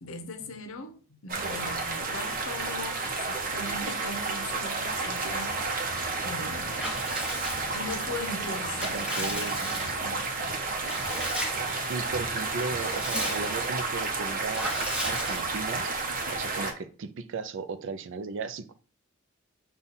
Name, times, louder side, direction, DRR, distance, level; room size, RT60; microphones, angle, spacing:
voice 1, 0.0-6.9 7.7-10.2, left 2 dB, 70° left, 0.7 m, -40 dB
sound 1, 1.3-16.7, right 3 dB, 40° right, 0.8 m, -31 dB
sound 2, 5.8-13.9, right 1 dB, 85° right, 0.8 m, -48 dB
Water / Bathtub (filling or washing) / Liquid, 6.8-8.0 8.5-10.2 10.8-11.8 12.2-12.3 12.6-13.8 14.5-15.8, equal, 5° right, 1.0 m, -35 dB
voice 2, 8.9-9.6 11.9-15.9 16.3-18.7, right 4 dB, 65° right, 0.4 m, -36 dB
5.4 x 2.4 x 4.0 m
head